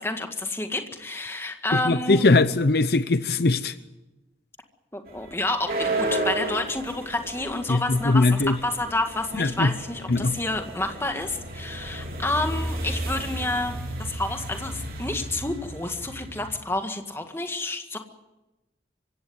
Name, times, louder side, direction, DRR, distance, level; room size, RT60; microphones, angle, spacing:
voice 1, 0.0-2.3 4.9-18.0, left 2 dB, 15° left, 5 dB, 1.8 m, -29 dB
voice 2, 1.7-3.7 7.7-8.6 9.4-9.7 10.1-10.3, left 2 dB, 60° left, 13 dB, 0.7 m, -21 dB
sound 1, 5.1-16.6, right 2 dB, 55° right, 3.9 m, -33 dB
24.5 x 16.5 x 9.5 m, 1.0 s
head